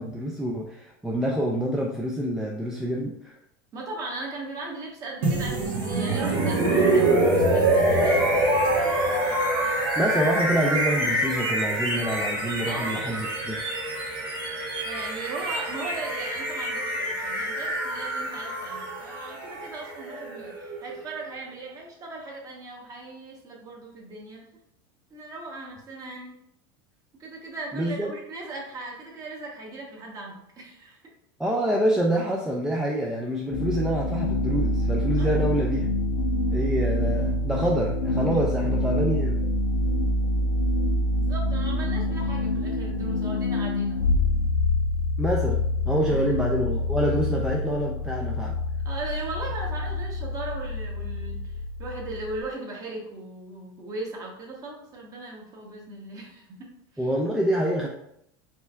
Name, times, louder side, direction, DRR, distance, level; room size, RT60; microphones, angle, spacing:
voice 1, 0.0-3.3 10.0-13.6 27.7-28.1 31.4-35.9 36.5-39.4 45.2-45.6 45.9-48.6 57.0-57.9, equal, 5° right, -2 dB, 0.3 m, -26 dB
voice 2, 3.7-9.3 12.6-13.0 14.8-24.5 25.1-26.4 27.2-31.0 35.2-35.3 41.1-44.1 46.1-46.2 48.8-56.4 56.9-57.1, right 2 dB, 30° right, -1 dB, 1.1 m, -38 dB
sound 1, 5.2-21.1, right 1 dB, 80° right, 1.4 m, -25 dB
sound 2, 33.5-52.4, left 1 dB, 75° left, 0.6 m, -26 dB
4.3 x 3.3 x 2.4 m, 0.75 s
supercardioid pair, 135°, 12 cm